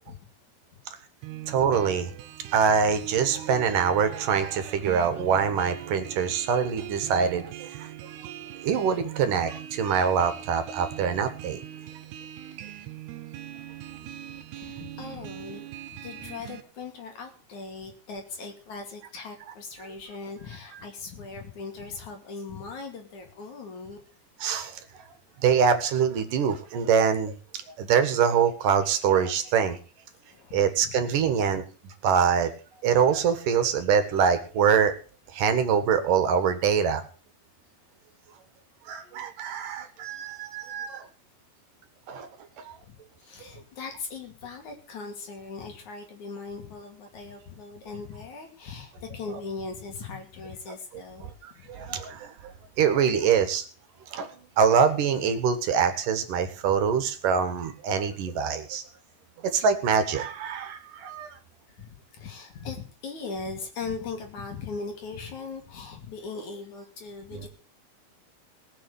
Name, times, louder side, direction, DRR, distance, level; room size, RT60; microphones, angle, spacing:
sound 1, 1.2-16.6, right 12 dB, 85° right, 3.0 m, -41 dB
voice 1, 1.5-2.1 2.5-8.3 8.6-11.6 24.4-24.8 25.4-29.8 30.5-32.5 32.8-35.0 35.3-37.0 38.9-41.0 42.1-42.3 42.6-42.8 51.2-53.6 54.1-54.3 54.6-58.8 59.5-61.3 67.3-67.5, right 7 dB, 65° right, 9 dB, 2.8 m, -24 dB
voice 2, 14.5-15.6 15.9-24.0 30.3-30.9 43.2-51.8 61.8-67.5, left 4 dB, 50° left, 4 dB, 3.6 m, -39 dB
19.0 x 7.0 x 7.0 m, 0.38 s
omnidirectional pair, 4.5 m